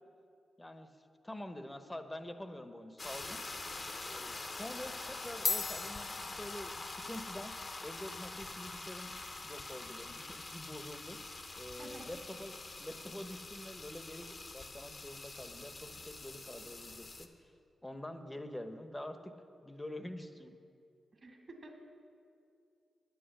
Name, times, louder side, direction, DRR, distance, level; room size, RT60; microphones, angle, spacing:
voice 1, 0.6-0.9 1.2-3.4 4.0-7.5 7.8-9.1 9.4-11.2 11.6-17.3 17.8-19.3 19.6-20.6, left 1 dB, 15° left, 9 dB, 0.9 m, -46 dB
sound 1, 3.0-17.3, left 3 dB, 45° left, 1.0 m, -45 dB
sound 2, 5.4-14.0, left 4 dB, 60° left, 0.6 m, -44 dB
voice 2, 11.8-12.1 21.1-21.8, right 2 dB, 55° right, 2 dB, 1.9 m, -51 dB
9.3 x 8.2 x 6.6 m, 2.5 s
supercardioid pair, 45°, 0 cm